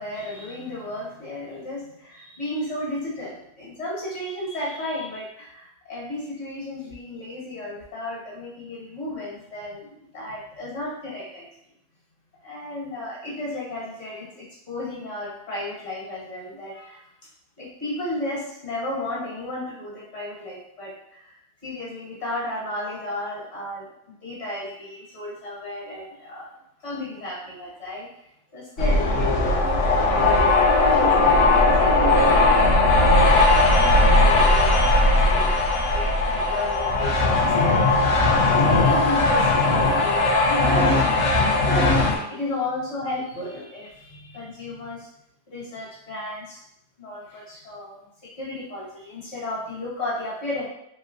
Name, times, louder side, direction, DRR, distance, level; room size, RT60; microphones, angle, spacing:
voice 1, 0.0-11.5 12.4-17.0 17.6-23.9 24.2-26.5 26.8-28.1 28.5-31.4 31.8-35.6 35.9-41.1 41.6-45.1 45.5-46.6 47.0-50.7, left 1 dB, 45° left, -6 dB, 1.4 m, -34 dB
sound 1, 28.8-42.2, left 2 dB, 65° left, 0.9 m, -18 dB
3.1 x 3.0 x 2.5 m, 0.77 s
omnidirectional pair, 1.7 m